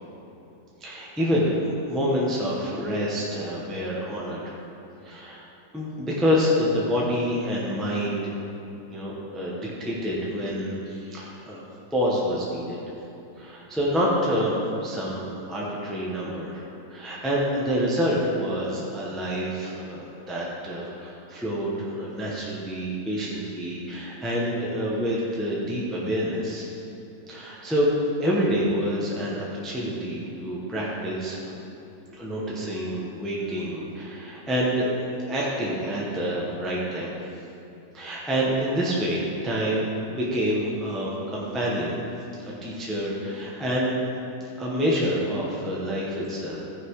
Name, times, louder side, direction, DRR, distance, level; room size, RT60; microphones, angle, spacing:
voice 1, 0.8-4.5 5.0-5.4 5.7-8.4 8.9-11.7 11.9-12.8 13.4-26.7 27.3-27.9 28.2-31.5 32.2-34.9 35.3-37.2 37.9-42.0 42.4-44.1 44.6-46.7, equal, ahead, -5 dB, 1.1 m, -27 dB
14.0 x 5.9 x 4.9 m, 2.9 s
omnidirectional pair, 1.9 m